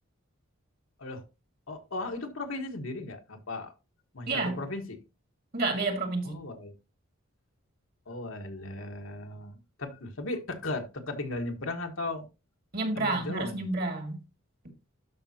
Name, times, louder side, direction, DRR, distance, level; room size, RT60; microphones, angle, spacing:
voice 1, 1.7-3.7 4.1-5.0 6.2-6.7 8.1-12.3 12.9-13.6, left 2 dB, 70° left, 1.4 m, -36 dB
voice 2, 4.3-4.6 5.5-6.4 12.7-14.2, right 3 dB, 50° right, 2.0 m, -29 dB
12.5 x 5.3 x 2.8 m
head